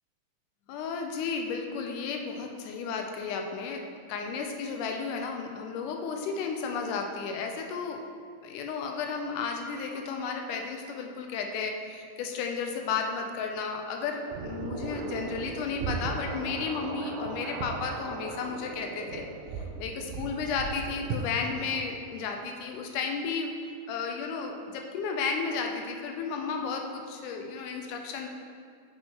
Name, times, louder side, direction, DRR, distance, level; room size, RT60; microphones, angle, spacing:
voice 1, 0.7-8.0 8.4-19.3 19.8-23.5 23.9-28.3, left 5 dB, 80° left, 3 dB, 2.0 m, -33 dB
sound 1, 14.3-21.8, right 4 dB, 80° right, 1.7 m, -37 dB
6.3 x 6.0 x 2.9 m, 2.2 s
omnidirectional pair, 3.8 m